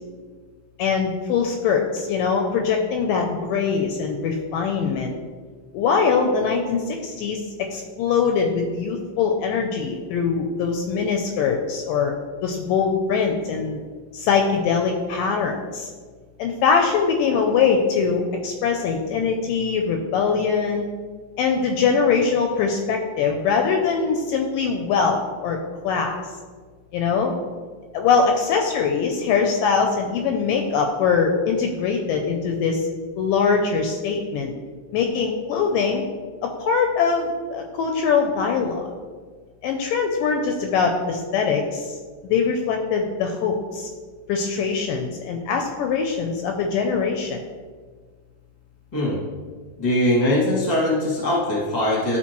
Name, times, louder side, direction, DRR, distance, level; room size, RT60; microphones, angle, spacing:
voice 1, 0.8-5.1 5.7-12.1 12.4-13.8 14.1-15.9 16.4-20.8 21.4-25.6 25.8-26.2 26.9-27.3 27.9-32.9 33.2-34.5 34.9-36.0 36.4-38.9 39.6-42.0 42.2-43.9 44.3-47.4, left 5 dB, 80° left, 3 dB, 2.0 m, -22 dB
voice 2, 49.8-52.2, left 1 dB, 20° left, -5 dB, 1.1 m, -21 dB
11.5 x 4.2 x 3.0 m, 1.5 s
omnidirectional pair, 4.2 m